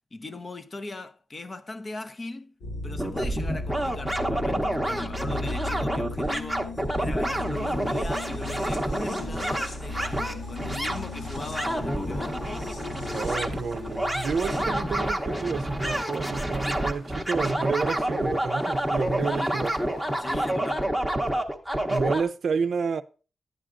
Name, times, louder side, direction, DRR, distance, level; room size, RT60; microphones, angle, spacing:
voice 1, 0.1-2.6 2.8-6.7 7.0-12.4 19.3-19.6 20.2-21.0, left 2 dB, 30° left, 0.6 m, -39 dB
sound 1, 2.6-14.6, left 2 dB, 85° left, 2.9 m, -36 dB
sound 2, 3.0-22.2, right 1 dB, 5° left, 0.9 m, -28 dB
sound 3, 7.5-20.5, left 1 dB, 60° left, 1.5 m, -44 dB
voice 2, 13.1-19.7 21.9-23.0, right 5 dB, 65° right, 0.5 m, -30 dB
11.0 x 9.6 x 2.5 m
wide cardioid pair, 160°, 0 cm